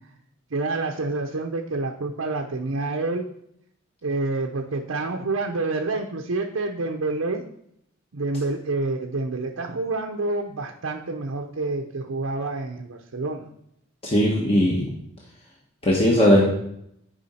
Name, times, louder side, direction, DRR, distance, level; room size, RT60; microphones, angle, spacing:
voice 1, 0.5-3.3 4.0-7.4 8.1-13.5, right 3 dB, 85° right, 2 dB, 0.7 m, -28 dB
voice 2, 14.0-14.9 15.8-16.4, equal, 30° left, -3 dB, 1.2 m, -18 dB
11.5 x 5.0 x 4.2 m, 0.74 s
head